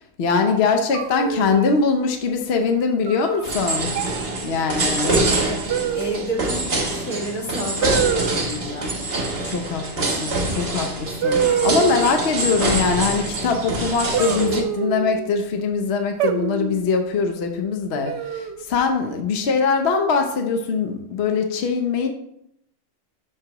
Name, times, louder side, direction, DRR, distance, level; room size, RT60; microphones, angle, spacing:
voice 1, 0.2-3.9 4.4-5.1 9.4-22.1, left 5 dB, 55° left, 4 dB, 0.9 m, -22 dB
sound 1, 0.9-1.8 3.1-3.4 3.9-4.3 5.7-6.3 7.8-8.4 10.3-10.4 11.2-12.2 14.1-15.2 16.2-16.8 18.0-18.6, right 8 dB, 65° right, 0.8 m, -25 dB
sound 2, 3.4-14.6, right 2 dB, 50° right, 1.3 m, -25 dB
voice 2, 5.0-5.6 5.9-8.9, right 1 dB, 85° left, -2 dB, 2.3 m, -30 dB
11.5 x 4.8 x 2.9 m, 0.78 s
omnidirectional pair, 1.4 m